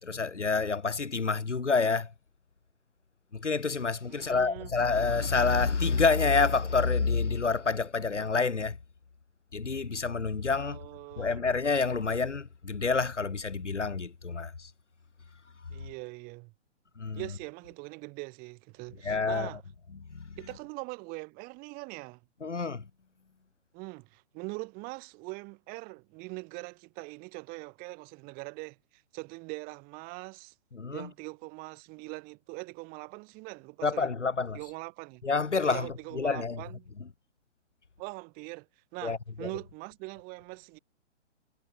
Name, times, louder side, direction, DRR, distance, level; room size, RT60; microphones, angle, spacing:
voice 1, 0.0-2.1 3.3-8.8 9.5-10.8 11.2-14.7 17.0-17.2 19.0-19.5 20.1-20.4 22.4-22.9 30.7-31.1 33.8-34.6 35.2-35.9 36.1-36.6 37.0-37.1 39.0-39.5, left 4 dB, 75° left, 2.7 m, -28 dB
voice 2, 4.1-4.7 10.6-11.4 15.7-16.5 17.1-19.6 20.4-22.2 23.7-30.5 30.9-34.1 34.5-35.3 35.7-36.9 38.0-38.7 38.9-40.8, right 28 dB, 25° right, 1.9 m, -42 dB
figure-of-eight pair, 125°, 36 cm